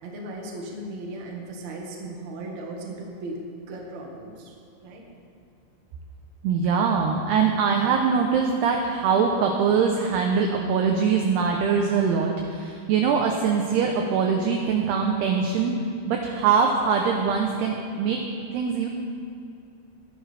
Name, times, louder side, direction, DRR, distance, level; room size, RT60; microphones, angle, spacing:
voice 1, 0.0-3.4 3.7-5.0, right 2 dB, 50° right, -1 dB, 2.3 m, -37 dB
voice 2, 6.4-15.8 16.1-18.2 18.5-18.9, right 6 dB, 75° right, 2 dB, 2.5 m, -23 dB
20.5 x 11.5 x 3.4 m, 2.6 s
omnidirectional pair, 5.5 m